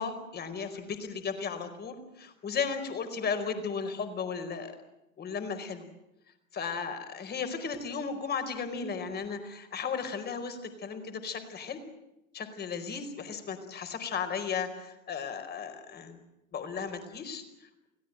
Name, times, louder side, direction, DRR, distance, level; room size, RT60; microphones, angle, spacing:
voice 1, 0.0-4.8 5.2-5.9 6.5-11.8 12.3-16.2 16.5-17.9, left 5 dB, 25° left, 8 dB, 4.8 m, -35 dB
30.0 x 18.5 x 9.0 m, 0.90 s
figure-of-eight pair, 100°, 42 cm